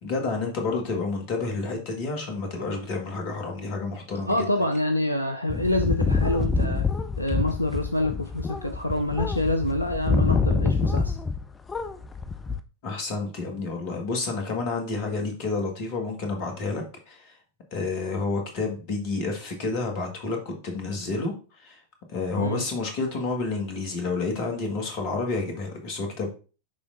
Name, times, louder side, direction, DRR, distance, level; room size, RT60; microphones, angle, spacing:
voice 1, 0.0-4.5 12.8-17.4 17.7-21.8 22.1-26.3, left 3 dB, 45° left, 3 dB, 1.7 m, -30 dB
voice 2, 4.2-6.9 7.2-11.2 22.4-22.6, left 1 dB, 85° left, 7 dB, 0.5 m, -26 dB
sound 1, 5.5-11.4 11.7-12.6, left 4 dB, 15° left, 0.5 m, -26 dB
10.5 x 3.5 x 2.6 m, 0.35 s
figure-of-eight pair, 90°, 0 cm